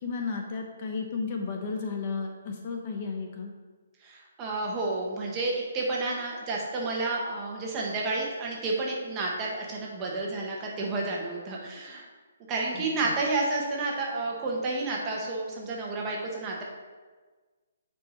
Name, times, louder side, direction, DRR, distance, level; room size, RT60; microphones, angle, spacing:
voice 1, 0.0-3.5 12.7-13.1, left 4 dB, 35° left, 2 dB, 0.9 m, -33 dB
voice 2, 4.0-12.0 12.5-16.6, right 3 dB, 20° right, -3 dB, 1.5 m, -30 dB
9.3 x 4.8 x 4.1 m, 1.4 s
hypercardioid pair, 160°, 0 cm